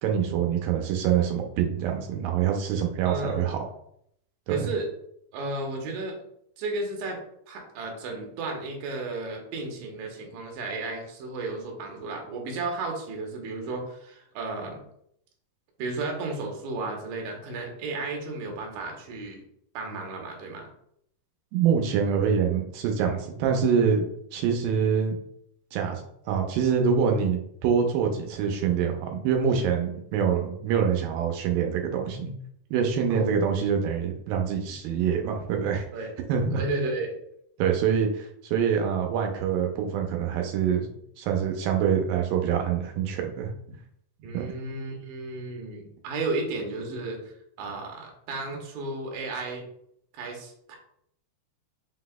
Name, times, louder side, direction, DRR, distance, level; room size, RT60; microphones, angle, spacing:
voice 1, 0.0-3.6 4.5-4.6 21.5-24.1 24.3-25.2 25.7-32.3 32.7-35.8 36.3-36.6 37.6-43.5 44.3-44.5, right 7 dB, 85° right, 2 dB, 2.3 m, -25 dB
voice 2, 3.1-3.5 4.5-4.9 5.3-6.2 6.6-7.2 7.5-14.8 15.8-19.4 19.7-20.7 33.1-33.3 35.9-36.1 36.6-37.2 44.2-47.3 47.6-49.6 50.1-50.8, right 3 dB, 70° right, 1 dB, 2.1 m, -33 dB
5.5 x 4.0 x 2.2 m, 0.71 s
omnidirectional pair, 3.9 m